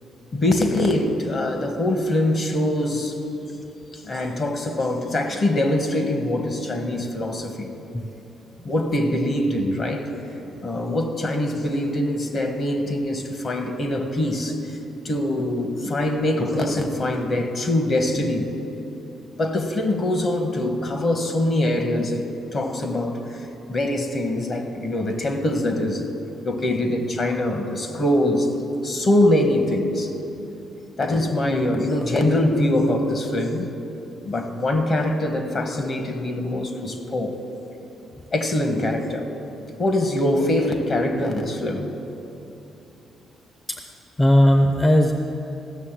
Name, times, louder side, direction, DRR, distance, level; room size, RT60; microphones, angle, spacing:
voice 1, 0.3-3.2 3.9-7.7 8.6-10.1 10.6-14.7 15.0-18.5 19.4-23.4 23.7-26.1 26.4-28.5 28.8-30.1 31.0-33.7 34.2-37.4 38.3-39.3 39.8-41.9, left 1 dB, 45° left, 6 dB, 1.4 m, -23 dB
voice 2, 44.2-45.1, equal, 20° left, 5 dB, 0.6 m, -16 dB
15.0 x 6.5 x 7.5 m, 3.0 s
cardioid pair, 90°, 0 cm